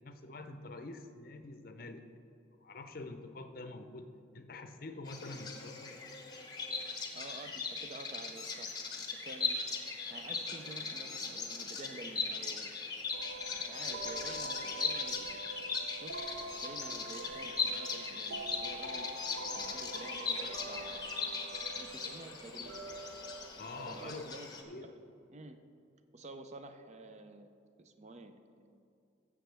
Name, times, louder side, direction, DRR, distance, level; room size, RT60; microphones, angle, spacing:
voice 1, 0.0-2.1 2.6-5.9 23.6-24.2 24.7-24.9, left 2 dB, 50° left, 7 dB, 0.6 m, -46 dB
Bird vocalization bird call bird song, 5.1-24.6, left 4 dB, 20° left, 0.9 m, -39 dB
voice 2, 7.1-8.8 9.1-12.7 13.5-15.7 16.0-16.4 16.6-19.1 19.5-21.2 21.8-22.8 23.9-25.0 25.3-25.6 26.1-27.5 27.8-28.7, right 2 dB, 35° right, 8 dB, 0.5 m, -50 dB
sound 1, 13.1-24.1, right 2 dB, 85° right, 0.8 m, -46 dB
14.0 x 7.5 x 3.4 m, 2.5 s
head